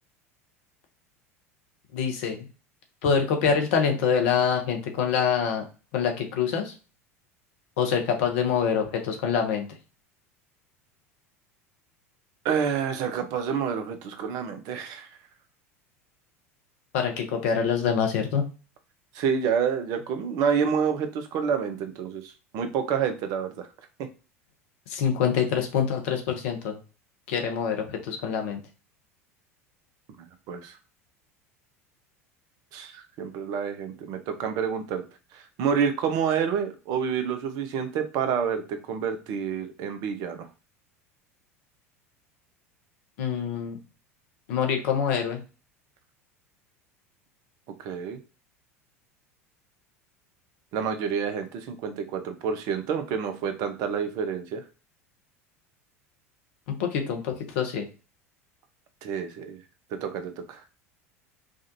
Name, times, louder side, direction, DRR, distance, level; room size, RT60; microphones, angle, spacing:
voice 1, 1.9-2.4 3.0-5.6 5.9-6.7 7.8-9.6 16.9-18.4 24.9-26.7 27.3-28.6 43.2-43.8 44.5-45.4 56.8-57.8, left 7 dB, 60° left, 4 dB, 0.9 m, -25 dB
voice 2, 12.4-15.1 19.1-23.7 30.5-30.8 32.7-35.0 35.3-40.5 47.8-48.2 50.7-54.6 59.0-59.6 60.0-60.6, right 7 dB, 50° right, 8 dB, 0.7 m, -28 dB
4.9 x 2.5 x 2.6 m, 0.33 s
figure-of-eight pair, 75°, 8 cm